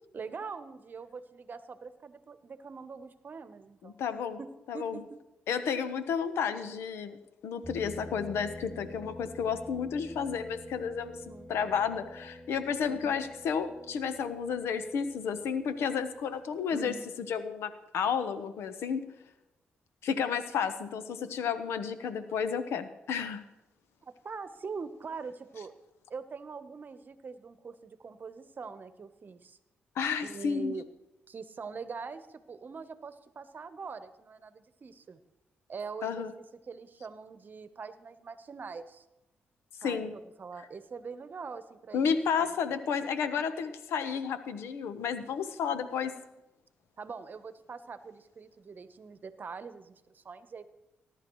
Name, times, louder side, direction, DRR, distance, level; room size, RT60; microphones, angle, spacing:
voice 1, 0.1-4.0 4.4-5.2 11.3-11.6 12.9-13.1 16.7-17.1 24.0-25.7 26.1-29.6 30.2-30.9 31.3-35.2 35.7-36.3 36.7-39.0 39.8-42.1 42.4-42.5 47.0-50.7, right 5 dB, 50° right, 12 dB, 0.9 m, -43 dB
voice 2, 3.8-4.4 4.7-5.0 5.5-7.2 7.4-16.9 17.3-19.0 20.0-23.4 30.0-30.7 36.0-36.3 39.8-40.1 41.9-46.1, left 6 dB, 80° left, 10 dB, 1.0 m, -32 dB
sound 1, 7.6-16.7, left 1 dB, 5° left, 2.9 m, -48 dB
19.0 x 10.5 x 3.1 m, 0.95 s
cardioid pair, 65°, 4 cm